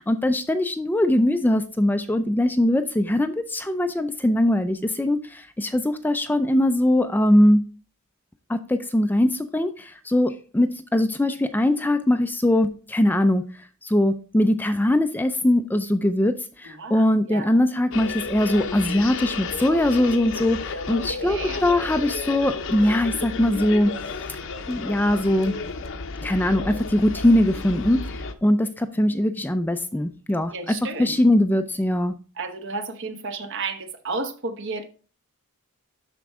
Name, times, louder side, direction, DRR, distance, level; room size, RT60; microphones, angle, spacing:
voice 1, 0.0-7.6 8.5-13.4 13.8-23.9 24.7-25.5 26.2-32.1, left 1 dB, 10° left, 0.4 m, -21 dB
voice 2, 16.6-17.6 20.9-21.6 30.5-31.2 32.3-34.8, right 3 dB, 55° right, 1.2 m, -32 dB
sound 1, 17.9-28.3, left 4 dB, 60° left, 0.8 m, -32 dB
12.0 x 4.5 x 3.6 m
head